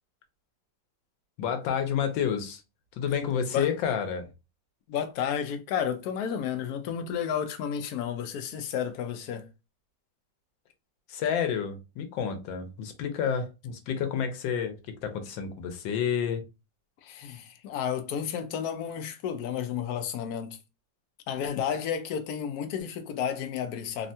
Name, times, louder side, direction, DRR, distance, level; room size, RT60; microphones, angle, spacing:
voice 1, 1.4-2.6 3.0-4.3 11.1-16.5, left 7 dB, 85° left, 1.4 m, -29 dB
voice 2, 4.9-9.5 17.0-20.6 21.3-24.1, left 8 dB, 70° left, 1.0 m, -32 dB
3.5 x 2.2 x 2.6 m
omnidirectional pair, 2.0 m